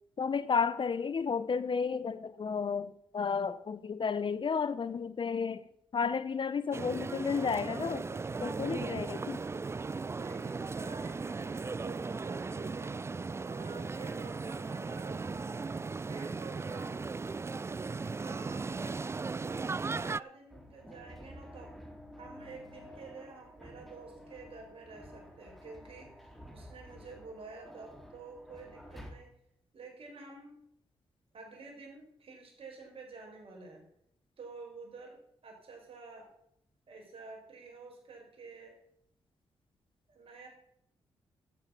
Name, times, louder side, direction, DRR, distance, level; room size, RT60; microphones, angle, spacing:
voice 1, 0.2-5.6 5.9-9.4, left 5 dB, 50° left, 15 dB, 0.8 m, -32 dB
sound 1, 6.7-20.2, right 4 dB, 25° right, 0.3 m, -37 dB
voice 2, 10.1-12.9 13.4-15.5 16.0-17.0 18.2-19.0 19.4-21.7 22.2-26.1 26.5-29.3 29.7-30.5 31.3-33.8 34.4-35.2 35.4-36.3 36.9-38.8 40.1-40.5, right 4 dB, 60° right, 1 dB, 5.0 m, -50 dB
sound 2, 20.5-29.1, equal, ahead, 3.4 m, -51 dB
12.0 x 8.6 x 5.8 m, 0.73 s
supercardioid pair, 45°, 11 cm